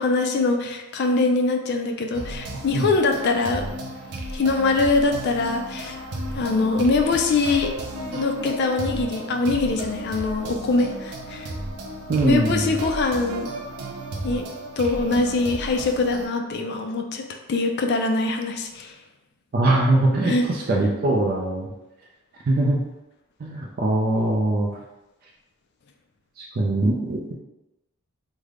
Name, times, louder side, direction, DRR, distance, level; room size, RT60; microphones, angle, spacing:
voice 1, 0.0-3.6 4.3-6.0 6.4-7.7 8.1-11.5 12.2-13.5 14.2-14.4 14.8-18.9 20.3-20.4, left 3 dB, 50° left, 4 dB, 0.3 m, -23 dB
sound 1, 2.1-16.3, right 1 dB, 90° right, 0.6 m, -34 dB
voice 2, 12.1-12.8 19.5-21.7 22.5-22.8 23.4-24.7 26.4-27.3, right 2 dB, 40° right, -2 dB, 0.4 m, -22 dB
3.3 x 2.1 x 3.6 m, 0.97 s
head